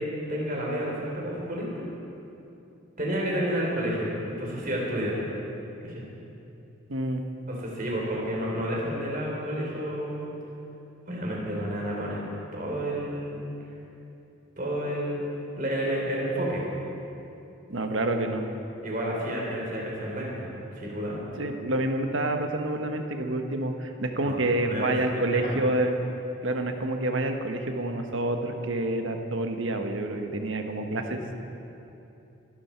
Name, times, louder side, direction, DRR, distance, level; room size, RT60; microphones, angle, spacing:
voice 1, 0.0-1.8 3.0-5.2 5.8-6.1 7.5-10.3 11.1-12.2 12.5-13.5 14.6-15.2 15.5-16.7 18.8-20.5 20.7-21.2 24.2-24.4 24.7-25.6 31.1-31.2, equal, 40° right, -3 dB, 3.8 m, -30 dB
voice 2, 6.9-7.2 17.7-18.4 21.4-26.0 26.4-31.3, right 2 dB, 70° right, 5 dB, 1.3 m, -28 dB
23.0 x 12.5 x 4.6 m, 2.9 s
head